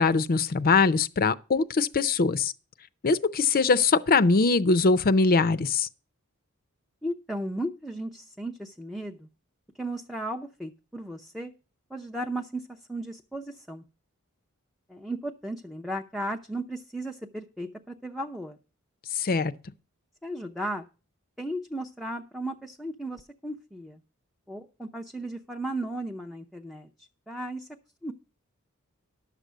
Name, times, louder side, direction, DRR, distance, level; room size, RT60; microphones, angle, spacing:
voice 1, 0.0-2.5 3.0-5.9 19.1-19.5, left 4 dB, 45° left, 0.5 m, -22 dB
voice 2, 7.0-9.3 9.8-11.5 11.9-13.8 14.9-18.6 20.2-20.9 21.4-24.0 24.5-27.7 28.0-28.1, right 1 dB, ahead, 0.5 m, -35 dB
11.0 x 6.7 x 6.1 m
head